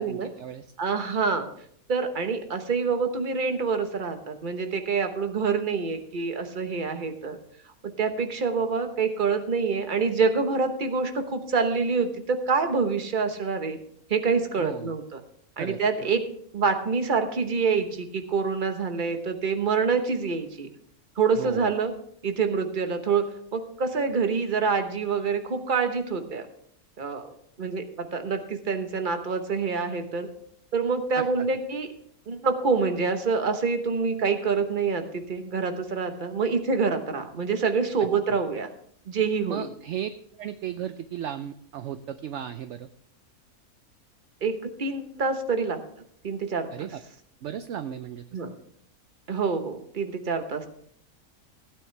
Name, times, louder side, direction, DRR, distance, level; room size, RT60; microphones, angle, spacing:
voice 1, 0.0-0.7 14.6-14.9 15.6-16.1 21.3-21.7 31.2-31.3 38.0-38.4 39.5-40.1 40.4-42.9 46.7-47.0 47.4-48.2, right 10 dB, 65° right, 10 dB, 0.8 m, -35 dB
voice 2, 0.8-1.5 1.9-7.4 8.0-13.8 14.1-15.0 15.6-16.3 16.5-20.7 21.2-21.9 22.2-23.3 23.5-26.5 27.0-27.3 27.6-30.3 30.7-31.9 32.3-38.7 39.1-39.7 44.4-45.8 46.2-46.9 48.3-48.5 49.3-50.7, right 5 dB, 35° right, 7 dB, 1.1 m, -26 dB
16.0 x 9.3 x 3.3 m, 0.65 s
omnidirectional pair, 1.6 m